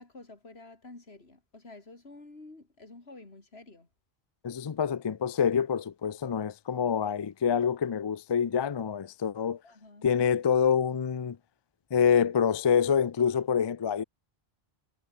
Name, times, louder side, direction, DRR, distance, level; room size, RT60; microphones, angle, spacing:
voice 1, 0.0-3.9 9.6-10.1, left 2 dB, 75° left, 3.7 m, -50 dB
voice 2, 4.4-9.6 10.0-11.4 11.9-14.0, left 7 dB, 40° left, 0.4 m, -26 dB
omnidirectional pair, 1.1 m